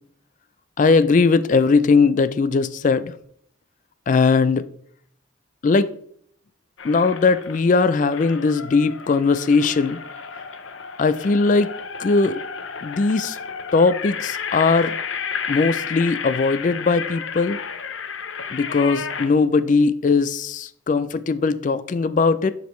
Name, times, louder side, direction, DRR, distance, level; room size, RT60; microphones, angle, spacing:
voice 1, 0.8-3.1 4.1-4.7 5.6-5.9 6.8-10.0 11.0-11.7 12.0-12.4 12.8-13.4 13.7-14.9 15.5-17.6 18.5-22.5, left 4 dB, 40° left, 0.3 m, -19 dB
sound 1, 6.8-7.7 8.1-19.3, left 6 dB, 80° left, 0.7 m, -32 dB
10.5 x 5.1 x 3.1 m
head